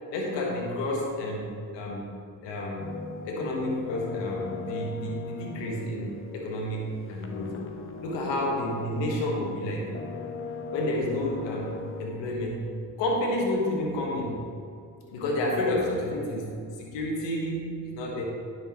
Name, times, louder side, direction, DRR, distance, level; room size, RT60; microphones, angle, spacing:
voice 1, 0.1-2.1 2.4-2.9 3.2-7.5 8.0-9.9 10.7-12.6 13.0-14.5 15.1-18.2, left 1 dB, 90° left, -1 dB, 1.5 m, -30 dB
sound 1, 2.8-9.5 9.9-12.1, left 4 dB, 30° left, 0.9 m, -38 dB
10.5 x 6.7 x 3.1 m, 2.4 s
supercardioid pair, 65°, 43 cm